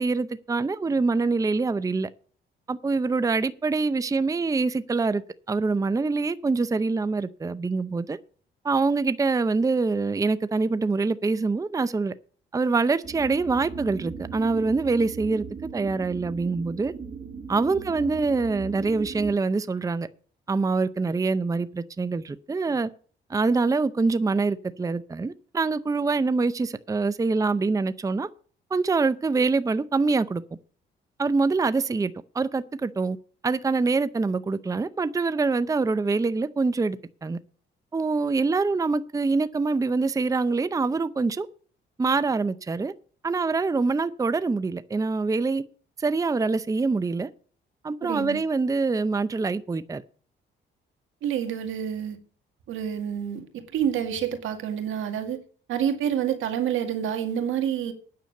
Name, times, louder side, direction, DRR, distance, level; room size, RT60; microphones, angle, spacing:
voice 1, 0.0-2.1 2.7-5.2 5.5-8.2 8.6-12.1 12.5-15.4 15.7-16.9 17.5-20.1 20.5-22.9 23.3-28.3 28.7-30.4 31.2-33.2 33.4-37.4 37.9-41.5 42.0-42.9 43.2-45.6 46.0-47.3 47.8-50.0, right 3 dB, 15° right, 0.6 m, -25 dB
sound 1, 13.0-19.3, right 5 dB, 35° right, 1.8 m, -38 dB
voice 2, 48.0-48.4 51.2-52.2 52.7-55.4 55.7-57.9, right 9 dB, 80° right, 2.0 m, -28 dB
9.4 x 6.9 x 8.9 m
cardioid pair, 90°, 20 cm